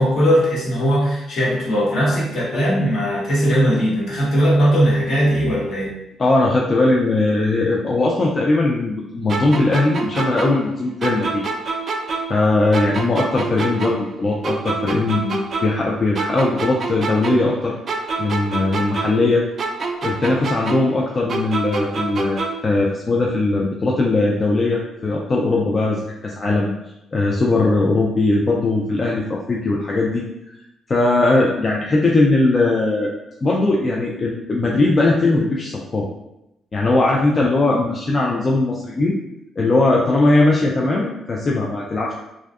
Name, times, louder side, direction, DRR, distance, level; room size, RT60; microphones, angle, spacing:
voice 1, 0.0-5.9, equal, 65° left, -5 dB, 0.9 m, -18 dB
voice 2, 6.2-11.4 12.3-17.8 18.2-19.5 20.0-26.7 27.1-30.2 30.9-33.1 33.4-36.1 36.7-39.1 39.6-42.1, left 2 dB, 35° left, -3 dB, 0.3 m, -19 dB
sound 1, 9.3-12.4 12.7-15.9 16.1-19.3 19.6-22.7, right 3 dB, 50° right, 0.3 m, -27 dB
2.5 x 2.2 x 2.3 m, 0.88 s
cardioid pair, 90°, 0 cm